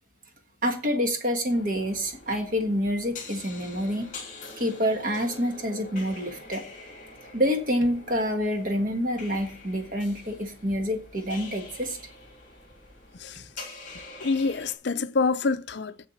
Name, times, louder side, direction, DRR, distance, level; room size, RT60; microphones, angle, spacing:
voice 1, 0.6-4.1 4.6-6.6 7.3-12.0, equal, 45° right, 1.5 m, -27 dB
sound 1, 1.5-14.7, left 3 dB, 40° left, 3.0 m, -45 dB
voice 2, 14.2-16.1, left 4 dB, 60° left, 0.5 m, -26 dB
7.3 x 7.0 x 7.1 m
head